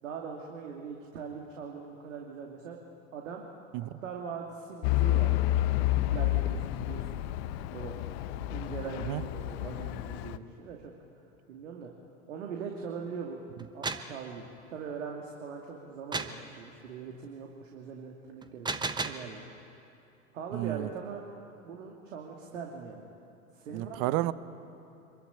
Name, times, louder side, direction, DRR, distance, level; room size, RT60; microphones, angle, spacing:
voice 1, 0.0-2.8 3.1-3.4 3.8-5.4 5.7-7.3 7.7-8.0 8.5-10.9 11.5-11.9 12.3-13.4 13.7-19.4 20.3-21.2 21.6-23.1 23.5-24.2, right 6 dB, 65° right, 0 dB, 2.6 m, -41 dB
Truck / Idling, 4.8-10.4, left 15 dB, 45° left, 1.0 m, -30 dB
sound 1, 13.6-14.1 16.1-16.4 18.4-19.3, right 3 dB, 10° right, 1.1 m, -33 dB
voice 2, 20.5-20.9 23.7-24.3, right 17 dB, 40° right, 16 dB, 1.0 m, -31 dB
26.0 x 22.5 x 8.9 m, 2.8 s
figure-of-eight pair, 85°, 41 cm